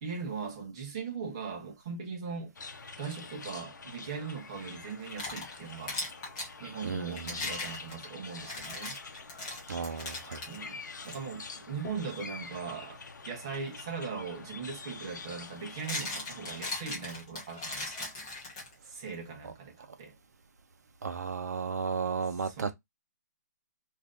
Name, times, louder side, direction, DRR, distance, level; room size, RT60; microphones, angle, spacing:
voice 1, 0.0-2.5 3.0-6.0 6.6-9.0 10.5-10.8 11.0-13.0 13.3-18.1 18.9-20.1 22.4-22.7, right 5 dB, 20° right, 0.7 m, -39 dB
sound 1, 2.5-16.8, left 4 dB, 90° left, 0.7 m, -46 dB
sound 2, 4.9-6.5 7.1-10.6 11.0-11.2 11.8-12.1 14.2-14.3 15.5-19.0, left 2 dB, 15° left, 0.7 m, -39 dB
voice 2, 6.8-7.5 9.7-10.4 21.0-22.7, right 5 dB, 65° right, 0.6 m, -34 dB
2.6 x 2.5 x 3.5 m
hypercardioid pair, 180°, 10 cm